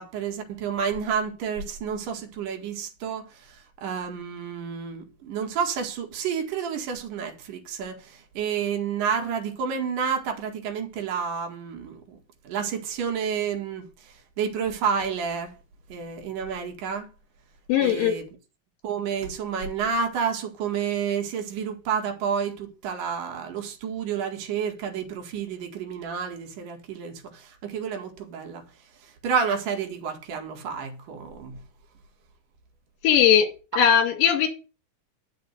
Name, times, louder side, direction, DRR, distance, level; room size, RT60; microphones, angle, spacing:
voice 1, 0.0-12.2 12.4-13.8 14.4-15.5 15.9-17.1 17.8-18.3 18.8-28.6 29.2-31.6, right 6 dB, 70° right, 3.4 m, -30 dB
voice 2, 17.7-18.2 33.0-33.5 33.8-34.5, left 9 dB, 75° left, 3.9 m, -19 dB
11.0 x 5.9 x 8.0 m
omnidirectional pair, 4.0 m